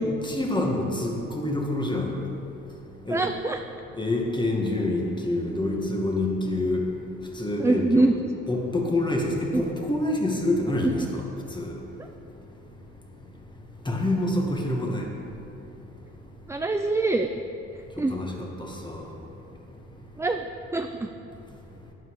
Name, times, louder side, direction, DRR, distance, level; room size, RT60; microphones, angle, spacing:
voice 1, 0.0-2.1 3.1-3.3 4.0-6.9 7.4-8.1 8.5-11.1 11.5-11.7 13.9-15.1 18.0-19.0, left 1 dB, 15° left, 0 dB, 1.9 m, -27 dB
voice 2, 3.1-3.6 7.6-8.1 9.5-9.6 10.8-10.9 16.5-17.3 18.0-18.1 20.2-20.5 20.7-21.1, right 2 dB, 10° right, 6 dB, 0.4 m, -24 dB
12.5 x 9.5 x 4.8 m, 2.8 s
cardioid pair, 90°, 30 cm